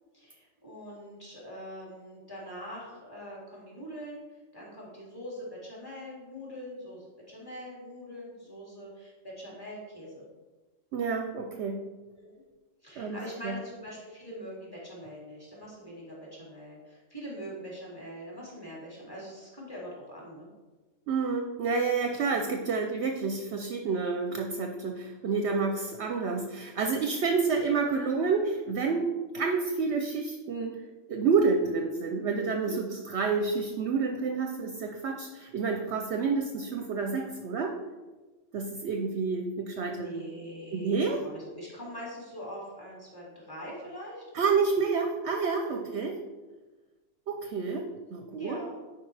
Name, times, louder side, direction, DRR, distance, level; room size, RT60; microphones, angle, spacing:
voice 1, 0.1-4.2 4.5-10.2 12.2-12.4 12.8-20.5 32.6-32.7 39.8-44.2 45.6-45.9 48.3-48.7, equal, 15° left, -5 dB, 2.4 m, -43 dB
voice 2, 10.9-11.8 13.0-13.5 21.1-37.7 38.5-40.1 40.7-41.2 44.3-46.2 47.3-48.6, right 4 dB, 65° right, 4 dB, 0.8 m, -29 dB
10.5 x 4.7 x 3.3 m, 1.2 s
omnidirectional pair, 1.4 m